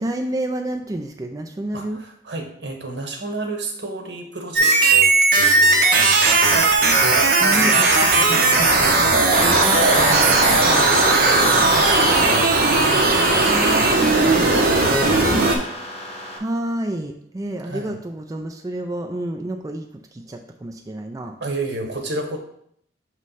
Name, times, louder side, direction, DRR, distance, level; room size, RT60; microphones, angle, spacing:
voice 1, 0.0-2.0 7.4-9.7 10.9-11.6 13.4-14.3 16.4-21.4, right 1 dB, 20° right, 4 dB, 0.4 m, -30 dB
voice 2, 1.7-6.6 9.5-15.6 17.7-18.0 21.4-22.4, right 2 dB, 75° right, 3 dB, 1.2 m, -32 dB
sound 1, 4.6-15.6, right 3 dB, 55° right, 1.0 m, -16 dB
sound 2, 9.3-16.4, left 1 dB, 35° left, 1.1 m, -28 dB
6.3 x 3.2 x 5.5 m, 0.68 s
head